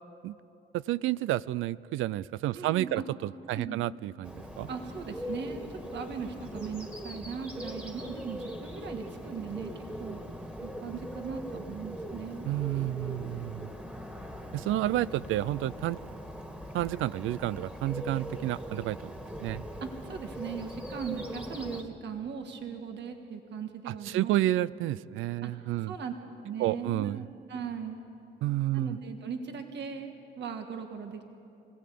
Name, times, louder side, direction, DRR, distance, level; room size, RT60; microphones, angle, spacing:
voice 1, 0.7-4.7 12.5-13.7 14.5-16.0 16.7-19.1 19.4-19.6 23.9-25.9 26.6-27.2 28.4-29.0, right 15 dB, 85° right, 19 dB, 0.4 m, -30 dB
voice 2, 2.5-3.1 3.5-3.9 4.7-5.6 5.9-10.2 10.6-12.5 19.8-24.5 25.4-25.5 25.9-26.1 26.4-28.0 28.7-31.2, right 6 dB, 65° right, 5 dB, 1.6 m, -38 dB
Bird, 4.2-21.8, equal, 5° right, 2.0 m, -41 dB
25.0 x 16.5 x 8.5 m, 2.9 s
cardioid pair, 90°, 20 cm